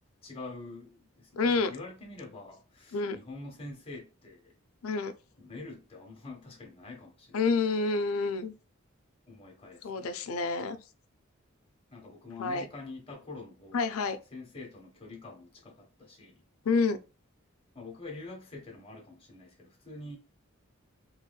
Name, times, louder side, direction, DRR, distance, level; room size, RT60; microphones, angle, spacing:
voice 1, 0.2-4.5 5.4-7.5 9.3-10.1 11.9-14.0 14.3-16.4 17.7-20.2, left 3 dB, 25° left, 1.1 m, -45 dB
voice 2, 1.3-1.7 2.9-3.2 4.8-5.1 7.3-8.5 9.8-10.8 12.4-12.6 13.7-14.2 16.6-17.0, left 4 dB, 80° left, 0.5 m, -28 dB
3.0 x 3.0 x 2.2 m
head